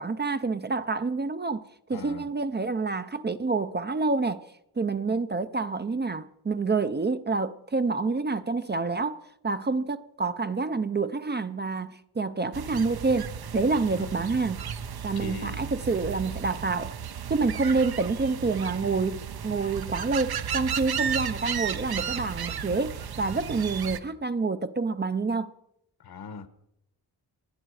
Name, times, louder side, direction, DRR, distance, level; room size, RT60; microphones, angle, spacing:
voice 1, 0.0-1.6 1.9-4.5 4.8-14.6 15.0-16.9 17.3-25.5, right 3 dB, 25° right, 0.5 m, -28 dB
voice 2, 1.9-2.3 13.9-14.2 15.1-15.7 26.0-26.5, left 5 dB, 70° left, 1.3 m, -40 dB
sound 1, 12.5-24.0, right 8 dB, 70° right, 0.9 m, -34 dB
28.5 x 10.0 x 4.8 m
wide cardioid pair, 160°, 39 cm